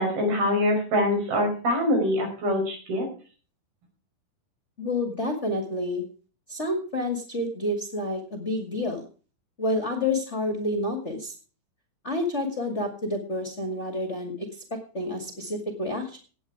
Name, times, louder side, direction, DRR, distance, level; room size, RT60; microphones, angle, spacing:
voice 1, 0.0-3.1, left 1 dB, 85° right, 2 dB, 6.9 m, -24 dB
voice 2, 4.8-6.0 6.5-9.0 9.6-11.3 12.0-16.2, left 1 dB, 25° left, 4 dB, 1.6 m, -29 dB
17.0 x 8.9 x 4.8 m, 0.38 s
omnidirectional pair, 4.2 m